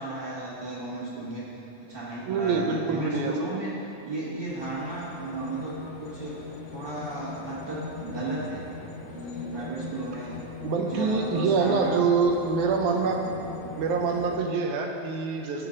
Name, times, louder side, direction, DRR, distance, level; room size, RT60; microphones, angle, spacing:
voice 1, 0.0-6.4 6.7-8.7 9.1-10.4 10.7-12.0 12.9-13.2, right 2 dB, 50° right, -9 dB, 1.5 m, -34 dB
voice 2, 2.3-3.3 10.6-13.3 13.8-15.7, right 4 dB, 80° right, 3 dB, 2.2 m, -25 dB
sound 1, 4.5-14.4, left 4 dB, 70° left, 1.9 m, -40 dB
14.0 x 4.9 x 3.8 m, 3.0 s
omnidirectional pair, 3.4 m